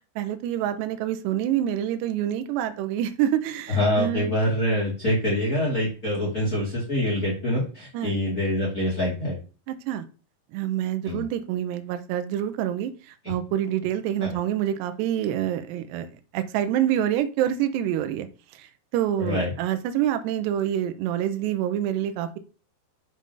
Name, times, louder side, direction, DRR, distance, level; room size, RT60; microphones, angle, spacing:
voice 1, 0.2-4.3 7.9-8.1 9.7-10.0 10.5-16.1 16.3-18.3 18.5-22.4, right 11 dB, 80° right, 9 dB, 2.6 m, -27 dB
voice 2, 3.7-9.4 11.0-11.2 14.2-14.3 19.2-19.5, left 1 dB, 40° left, -4 dB, 1.3 m, -25 dB
7.5 x 3.8 x 5.4 m, 0.35 s
omnidirectional pair, 5.4 m